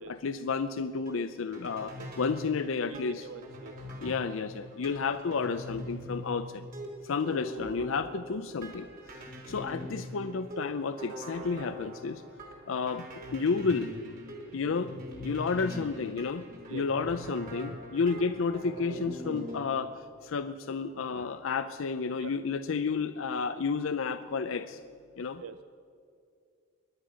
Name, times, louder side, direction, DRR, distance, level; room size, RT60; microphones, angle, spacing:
voice 1, 0.0-3.3 4.0-6.6 7.0-8.9 9.5-12.2 12.7-13.9 14.5-14.9 15.2-16.5 16.7-24.8 25.2-25.4, left 5 dB, 80° left, 10 dB, 0.5 m, -31 dB
sound 1, 1.0-19.6, equal, 45° right, 3.2 m, -43 dB
voice 2, 2.0-2.3 2.9-3.7 16.7-16.9 22.2-22.4 25.4-25.6, right 6 dB, 80° right, 11 dB, 0.5 m, -44 dB
23.0 x 9.7 x 6.3 m, 2.3 s
head